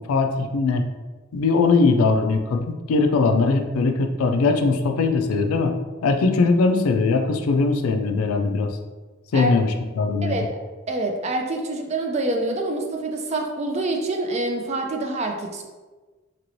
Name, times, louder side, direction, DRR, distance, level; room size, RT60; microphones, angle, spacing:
voice 1, 0.1-0.9 1.3-5.7 6.0-8.7 9.3-10.4, left 3 dB, 85° left, 6 dB, 0.4 m, -20 dB
voice 2, 10.2-15.6, right 2 dB, 30° right, 3 dB, 0.3 m, -26 dB
3.0 x 2.9 x 2.7 m, 1.3 s
head